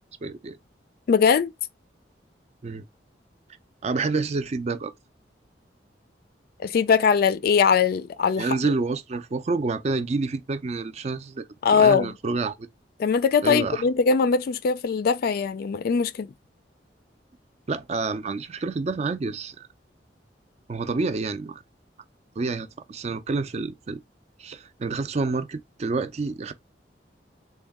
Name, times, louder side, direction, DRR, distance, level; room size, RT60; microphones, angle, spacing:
voice 1, 0.2-0.6 2.6-2.8 3.8-4.9 8.4-12.6 13.4-13.8 17.7-19.7 20.7-21.6 22.4-24.0 24.4-26.5, right 3 dB, 40° right, 0.4 m, -28 dB
voice 2, 1.1-1.5 6.6-8.5 11.6-12.1 13.0-16.3, left 6 dB, 55° left, 0.3 m, -21 dB
3.6 x 2.2 x 3.5 m
head